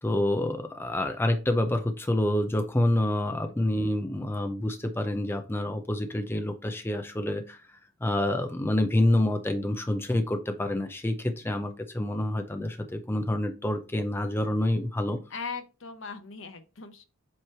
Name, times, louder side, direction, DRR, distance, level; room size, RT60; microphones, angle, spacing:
voice 1, 0.0-15.2, left 1 dB, 10° left, 0.4 m, -27 dB
voice 2, 15.3-17.1, left 5 dB, 60° left, 0.8 m, -39 dB
7.6 x 3.1 x 4.4 m
head